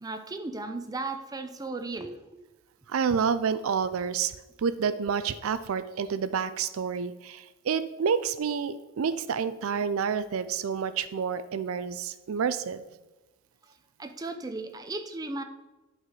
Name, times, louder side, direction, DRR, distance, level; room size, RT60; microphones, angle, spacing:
voice 1, 0.0-2.2 14.0-15.4, right 3 dB, 20° right, 6 dB, 0.6 m, -35 dB
voice 2, 2.9-4.3 4.6-12.8, right 6 dB, 75° right, 13 dB, 0.4 m, -29 dB
11.0 x 4.2 x 4.8 m, 1.1 s
head